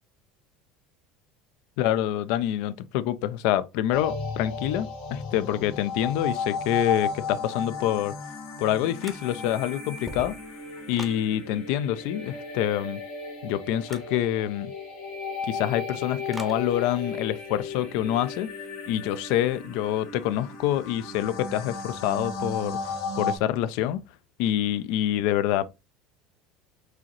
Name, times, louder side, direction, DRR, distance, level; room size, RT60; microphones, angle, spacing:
voice 1, 1.8-8.1 8.6-10.4 10.9-13.0 13.4-14.7 15.4-18.5 18.9-24.0 24.4-25.6, left 12 dB, 70° left, 0.4 m, -26 dB
sound 1, 3.9-23.4, left 4 dB, 85° left, 2.0 m, -35 dB
sound 2, 9.0-9.6 9.9-11.3 13.8-14.1 16.3-16.6, right 2 dB, 10° right, 0.7 m, -42 dB
4.7 x 3.0 x 3.0 m
supercardioid pair, 135°, 0 cm